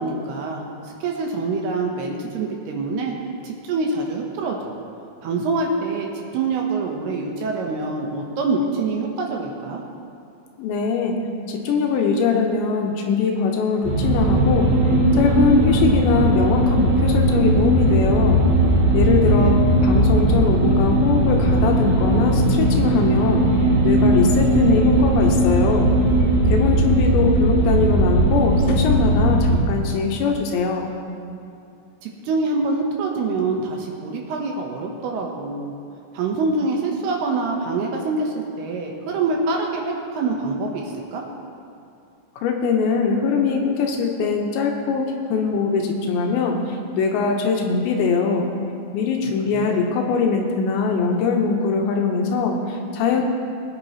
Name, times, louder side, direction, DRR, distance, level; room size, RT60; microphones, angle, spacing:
voice 1, 0.0-3.1 3.4-4.7 5.2-9.8 18.9-19.6 26.5-26.6 32.0-35.7 36.1-41.2 49.5-49.9, right 3 dB, 75° right, 0 dB, 2.4 m, -25 dB
voice 2, 10.6-11.2 11.5-14.7 15.1-18.4 18.9-23.5 23.8-25.9 26.5-30.9 42.4-48.5 48.9-53.2, left 5 dB, 80° left, 1 dB, 2.9 m, -22 dB
sound 1, 13.8-29.6, right 1 dB, 55° right, 2.3 m, -18 dB
19.5 x 9.8 x 3.0 m, 2.5 s
omnidirectional pair, 5.8 m